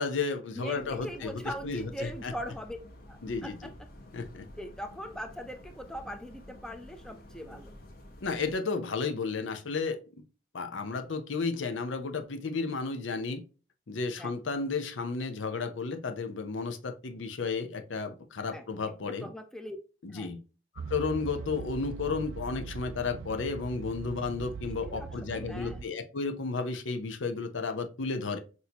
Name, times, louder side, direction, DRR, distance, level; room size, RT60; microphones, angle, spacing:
voice 1, 0.0-2.3 3.2-3.6 4.1-4.5 8.2-10.0 10.5-13.4 13.9-19.3 20.0-20.4 20.9-28.4, left 4 dB, 85° left, 7 dB, 0.6 m, -33 dB
voice 2, 0.5-2.8 3.1-3.7 4.6-7.7 14.2-14.3 18.5-18.6 19.2-19.8 20.1-20.3 24.6-25.8, equal, 5° left, 6 dB, 0.5 m, -41 dB
sound 1, 0.7-8.5, left 1 dB, 50° left, 1.0 m, -50 dB
sound 2, 20.8-25.9, right 5 dB, 85° right, 0.3 m, -41 dB
6.1 x 2.7 x 2.8 m, 0.34 s
head